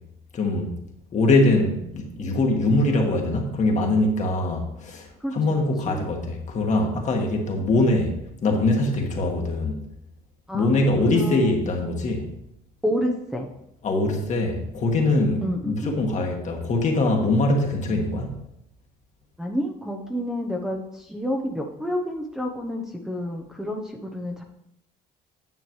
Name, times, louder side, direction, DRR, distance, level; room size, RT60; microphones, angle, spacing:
voice 1, 0.3-0.7 1.1-8.1 8.4-9.8 10.5-12.3 13.8-18.4, left 2 dB, 45° left, 1 dB, 1.6 m, -22 dB
voice 2, 11.0-11.6 12.8-13.5 15.4-15.9 19.4-24.4, equal, 5° right, 0 dB, 0.8 m, -29 dB
9.3 x 6.7 x 3.1 m, 0.82 s
cardioid pair, 110°, 17 cm